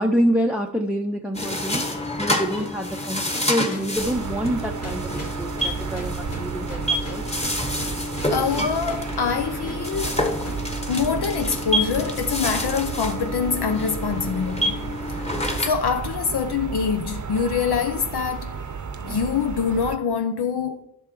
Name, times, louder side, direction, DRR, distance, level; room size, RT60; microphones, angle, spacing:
voice 1, 0.0-1.8 2.2-5.1 5.4-7.2, equal, 5° right, 0.6 m, -26 dB
sound 1, 1.3-15.7, left 1 dB, 15° left, 1.3 m, -28 dB
sound 2, 1.4-10.7 10.9-11.1 11.5-11.7 12.0-12.2 12.6-12.8, equal, 40° left, 1.8 m, -40 dB
sound 3, 4.0-20.0, right 6 dB, 45° right, 0.8 m, -33 dB
voice 2, 8.3-10.2 10.9-15.2 15.6-18.6 19.0-20.8, left 6 dB, 75° left, 0.7 m, -25 dB
11.0 x 6.1 x 4.6 m
wide cardioid pair, 90°, 40 cm